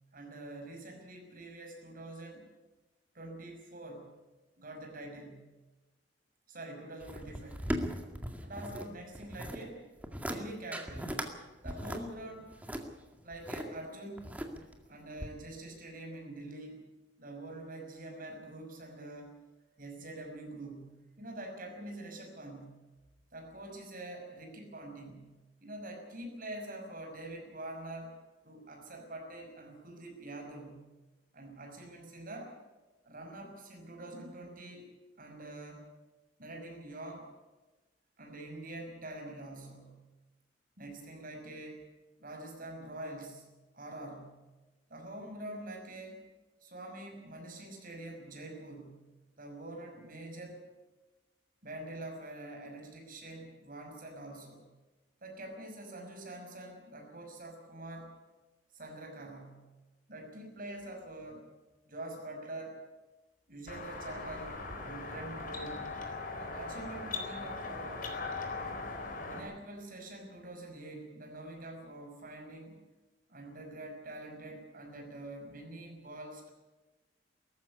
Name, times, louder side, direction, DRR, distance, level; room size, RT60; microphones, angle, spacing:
voice 1, 0.1-2.5 3.1-4.1 4.6-5.5 6.5-7.8 8.4-9.9 10.2-11.2 11.6-12.6 13.2-14.3 14.9-16.8 17.2-19.4 19.8-22.8 23.3-25.3 25.6-28.2 28.4-30.8 31.3-32.6 33.0-34.9 35.2-35.9 36.4-37.3 38.2-40.0 40.8-41.9 42.2-43.5 43.7-44.4 44.9-46.3 46.6-49.1 49.4-50.7 51.6-54.6 55.2-58.1 58.7-59.7 60.1-61.5 61.9-62.8 63.5-65.9 66.4-68.0 69.3-72.8 73.3-76.5, right 1 dB, 50° right, 3 dB, 5.8 m, -45 dB
sound 1, 7.0-8.9 9.1-9.6 10.0-10.4 10.7-11.3 11.6-13.6 14.2-14.8 15.2-15.3, equal, 10° right, 2.1 m, -38 dB
sound 2, 63.7-69.4, left 3 dB, 50° left, 4.0 m, -40 dB
18.5 x 14.5 x 9.8 m, 1.2 s
head